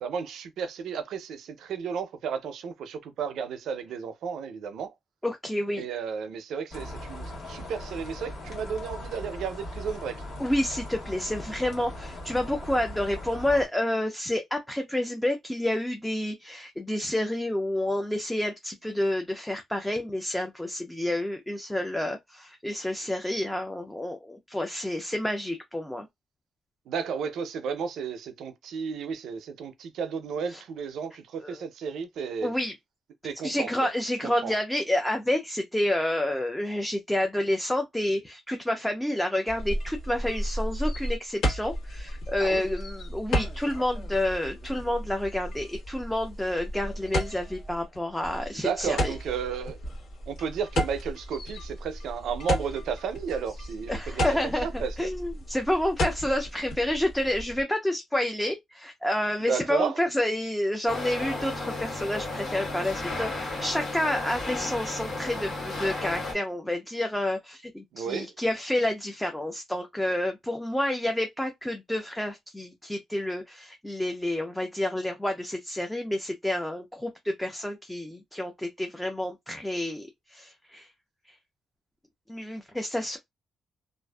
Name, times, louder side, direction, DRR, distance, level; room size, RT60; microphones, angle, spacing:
voice 1, 0.0-4.9 5.8-10.2 26.9-32.5 33.2-33.9 34.2-34.5 42.4-42.7 48.5-49.8 50.3-54.2 54.6-55.1 59.5-60.0 67.9-68.3, right 6 dB, 75° right, 0.4 m, -33 dB
voice 2, 5.2-5.8 10.4-26.1 30.5-30.6 31.4-31.6 32.4-32.7 33.4-49.1 53.9-80.9 81.3-81.4 82.3-83.2, left 1 dB, 5° left, 0.3 m, -29 dB
sound 1, 6.7-13.7, left 1 dB, 55° left, 1.3 m, -39 dB
sound 2, 39.5-57.6, equal, 75° left, 1.2 m, -33 dB
sound 3, 60.9-66.3, left 2 dB, 40° left, 1.2 m, -33 dB
2.5 x 2.3 x 2.2 m
cardioid pair, 165°, 0 cm